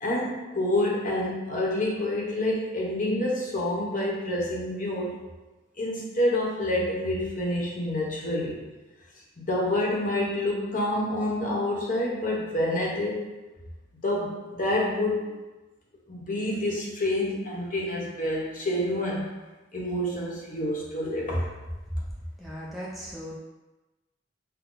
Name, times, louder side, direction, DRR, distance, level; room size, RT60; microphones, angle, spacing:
voice 1, 0.0-5.1 5.8-8.6 9.4-13.3 14.0-15.4 16.1-19.3 19.7-21.5, left 1 dB, 45° left, -4 dB, 1.1 m, -28 dB
voice 2, 22.4-23.4, equal, ahead, -7 dB, 0.6 m, -38 dB
5.9 x 2.2 x 3.9 m, 1.1 s
head